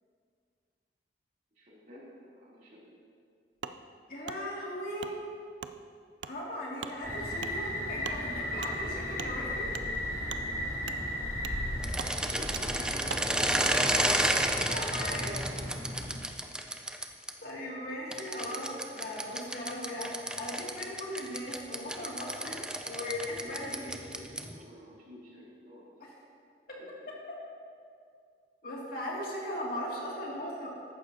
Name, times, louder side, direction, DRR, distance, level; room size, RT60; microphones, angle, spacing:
voice 1, 1.6-2.9 12.2-13.3 23.3-26.0 26.8-26.9, equal, 45° right, -7 dB, 3.2 m, -49 dB
Wood, 3.6-3.8 4.3-4.4 5.0-5.1 5.6-5.7 6.2-6.3 6.8-7.0 7.4-7.5 8.0-8.2 8.6-8.7 9.2-9.3 9.7-9.9 10.3-10.4 10.8-11.0 11.4-11.6 11.9-12.1 12.5-12.7 13.1-13.3 13.6-13.8, right 7 dB, 80° right, 0.4 m, -40 dB
voice 2, 4.1-5.2 6.2-9.7 12.2-12.3 14.6-15.3 17.4-24.0 26.7-26.8 27.3-27.4 28.6-30.7, left 1 dB, 55° left, -5 dB, 2.3 m, -38 dB
sound 1, 7.0-16.1, left 1 dB, 20° left, 3.1 m, -36 dB
sound 2, 11.8-17.3 18.1-24.6, right 1 dB, 5° right, 0.4 m, -31 dB
14.5 x 11.5 x 2.8 m, 2.3 s
head